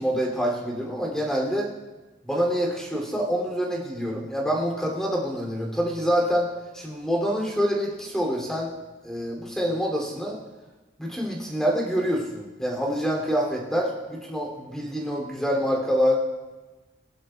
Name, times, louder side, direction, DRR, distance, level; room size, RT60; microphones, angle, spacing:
voice 1, 0.0-1.7 2.2-6.5 6.7-8.7 9.0-10.4 11.0-16.2, equal, 5° left, -1 dB, 2.8 m, -26 dB
21.0 x 11.5 x 2.3 m, 1.2 s
head